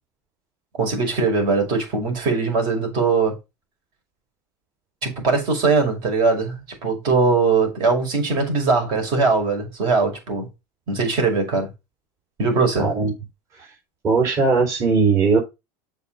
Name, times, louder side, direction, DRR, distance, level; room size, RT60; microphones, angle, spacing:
voice 1, 0.8-3.4 5.0-10.5 10.9-11.7 12.4-12.9, right 4 dB, 50° right, 5.6 m, -21 dB
voice 2, 12.8-13.1 13.5-13.7 14.0-15.4, right 4 dB, 35° right, 3.9 m, -19 dB
7.2 x 5.0 x 5.6 m
supercardioid pair, 140°, 9 cm